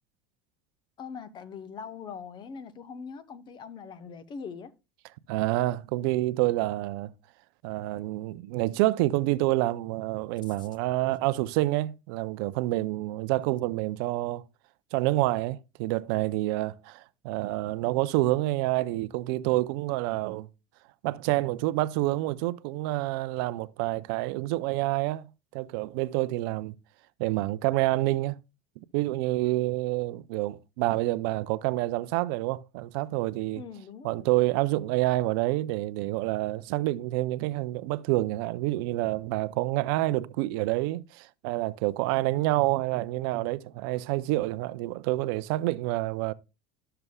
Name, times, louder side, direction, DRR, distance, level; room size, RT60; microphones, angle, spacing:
voice 1, 1.0-4.7 33.5-34.3, left 6 dB, 40° left, 1.0 m, -42 dB
voice 2, 5.3-7.1 7.6-14.4 14.9-20.5 21.0-25.2 25.5-26.7 27.2-28.4 28.9-33.6 34.0-46.3, right 18 dB, 70° right, 0.5 m, -28 dB
12.5 x 6.7 x 2.3 m
supercardioid pair, 110°, 12 cm